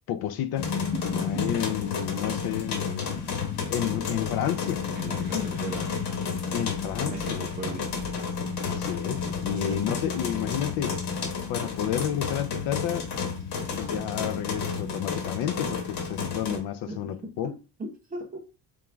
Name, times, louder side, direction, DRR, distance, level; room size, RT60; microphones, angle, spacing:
voice 1, 0.1-0.7 1.1-3.3 3.7-4.8 5.2-5.6 6.5-7.4 8.6-11.0 11.5-13.1 13.8-17.5, left 10 dB, 65° left, 0.5 m, -31 dB
sound 1, 0.6-16.6, left 5 dB, 85° left, 1.2 m, -31 dB
voice 2, 0.9-1.5 3.7-4.1 4.9-6.0 6.9-8.1 9.5-10.0 16.9-17.0 17.4-17.5 18.1-18.4, right 3 dB, 20° right, 0.9 m, -39 dB
3.6 x 3.1 x 3.4 m
cardioid pair, 175°, 39 cm